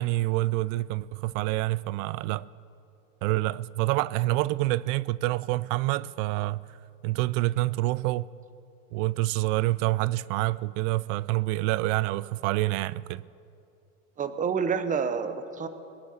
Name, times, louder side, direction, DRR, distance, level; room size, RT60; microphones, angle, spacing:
voice 1, 0.0-2.5 3.2-6.6 7.0-8.3 8.9-13.2, right 18 dB, 65° right, 0.5 m, -27 dB
voice 2, 14.2-15.7, right 6 dB, 20° right, 0.8 m, -28 dB
21.5 x 9.1 x 7.1 m
supercardioid pair, 130°, 41 cm